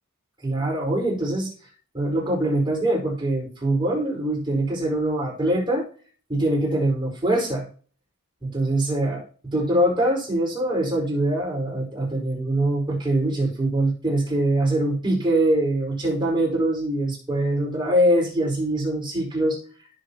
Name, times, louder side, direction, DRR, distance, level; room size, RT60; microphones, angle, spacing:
voice 1, 0.4-1.5 1.9-5.9 6.3-7.7 8.4-19.6, right 1 dB, 20° right, -1 dB, 4.9 m, -23 dB
17.5 x 7.2 x 3.0 m, 0.41 s
head